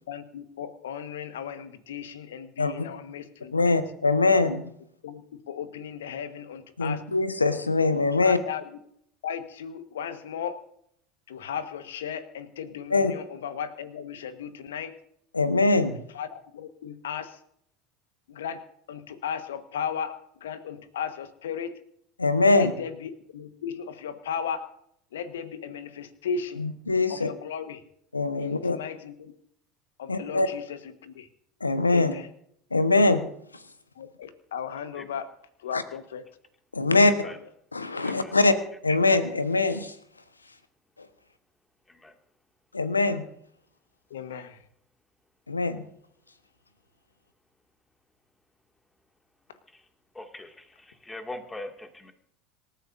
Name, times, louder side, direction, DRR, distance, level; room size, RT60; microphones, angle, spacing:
voice 1, 0.1-3.5 5.0-7.0 8.2-8.6 9.2-10.6 11.3-14.9 16.2-16.3 16.5-17.3 18.3-18.6 18.9-20.1 20.4-21.7 22.5-24.6 25.1-26.6 27.2-27.8 28.4-29.3 30.0-30.6 31.0-31.3 31.9-32.2 34.0-35.3 35.6-36.2 44.1-44.5, left 7 dB, 75° left, 10 dB, 1.4 m, -35 dB
voice 2, 3.5-4.7 6.8-8.4 12.9-13.1 15.3-16.0 22.2-22.7 26.6-27.3 28.1-28.8 30.1-30.5 31.6-32.1 32.7-33.3 35.7-35.8 36.7-37.1 37.7-38.5 38.8-39.9 42.7-43.2 45.5-45.8, left 3 dB, 90° left, 11 dB, 1.1 m, -22 dB
voice 3, 50.2-50.5 51.1-52.1, left 2 dB, 10° left, 4 dB, 2.3 m, -40 dB
26.5 x 13.5 x 2.7 m, 0.69 s
figure-of-eight pair, 75°, 0 cm